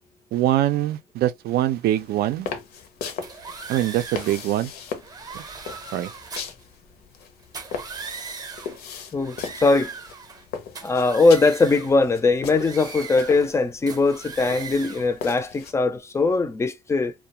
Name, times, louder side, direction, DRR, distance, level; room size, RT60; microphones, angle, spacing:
voice 1, 0.3-2.5 3.7-4.7 5.3-5.4 5.9-6.1, right 13 dB, 70° right, 0.4 m, -23 dB
sound 1, 1.8-15.7, left 6 dB, 70° left, 0.6 m, -39 dB
sound 2, 3.2-4.4 5.0-6.6 7.4-8.8 9.2-10.4 10.7-12.0 12.5-13.6 13.9-15.1, right 4 dB, 25° right, 0.7 m, -39 dB
voice 2, 9.1-9.9 10.8-17.1, left 3 dB, 15° left, 0.4 m, -20 dB
2.3 x 2.1 x 2.9 m
cardioid pair, 110°, 17 cm